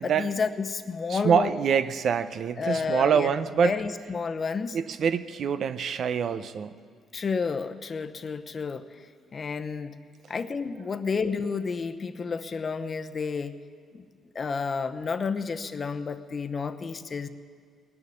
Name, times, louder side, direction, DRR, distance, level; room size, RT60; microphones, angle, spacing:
voice 1, 0.0-1.5 2.6-3.3 3.6-4.8 7.1-9.1 9.3-10.0 10.3-13.6 13.9-14.0 14.3-17.3, left 5 dB, 40° left, 9 dB, 0.9 m, -30 dB
voice 2, 1.1-3.7 4.7-6.8, right 7 dB, 60° right, 12 dB, 0.7 m, -25 dB
19.0 x 6.9 x 9.9 m, 2.1 s
cardioid pair, 90°, 0 cm